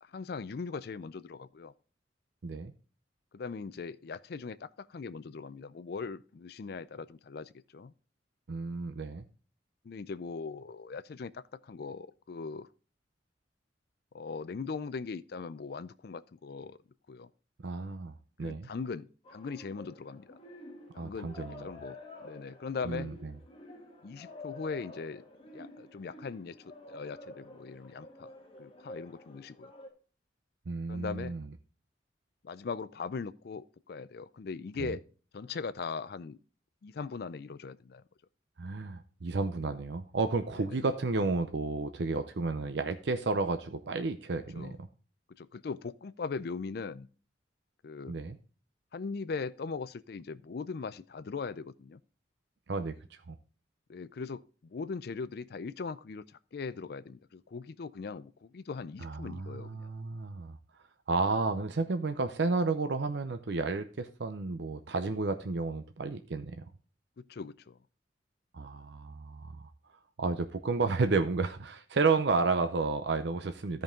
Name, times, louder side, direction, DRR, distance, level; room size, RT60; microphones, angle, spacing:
voice 1, 0.0-1.7 3.3-7.9 9.8-12.7 14.1-16.8 17.1-17.3 18.4-20.3 20.9-22.0 22.2-23.1 24.0-25.2 25.5-26.6 26.9-28.3 28.6-29.7 30.9-31.3 32.4-35.0 35.3-36.4 36.8-38.0 40.6-40.7 44.5-44.8 45.4-47.1 47.8-48.2 48.9-52.0 53.9-56.2 56.5-59.9 67.3-67.8, left 4 dB, 60° left, 0.4 m, -40 dB
voice 2, 8.5-9.2 17.6-18.7 21.0-21.7 22.9-23.3 30.7-31.5 34.8-34.9 38.6-44.9 48.1-48.4 52.7-52.9 53.3-53.4 59.0-60.6 61.1-66.6 68.5-69.7 70.2-73.8, right 3 dB, 70° right, 0.6 m, -32 dB
sound 1, 19.2-29.9, left 2 dB, 30° left, 1.5 m, -49 dB
13.0 x 5.3 x 3.7 m
head